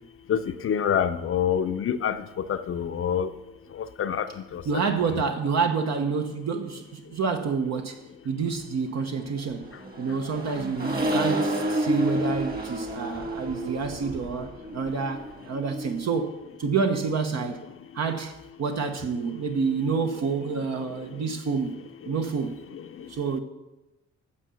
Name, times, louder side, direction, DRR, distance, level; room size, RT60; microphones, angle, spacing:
voice 1, 0.3-2.2 2.5-3.3 4.0-4.3 4.5-4.6 5.1-5.2, left 8 dB, 45° left, 0.6 m, -26 dB
voice 2, 4.6-8.0 8.2-9.7 10.0-17.6 17.9-18.3 18.6-21.8 22.1-22.6 23.1-23.4, right 5 dB, 60° right, 1.0 m, -28 dB
Accelerating revving vroom, 9.4-16.1, right 1 dB, 30° right, 1.9 m, -30 dB
9.6 x 6.5 x 7.0 m
cardioid pair, 90°, 30 cm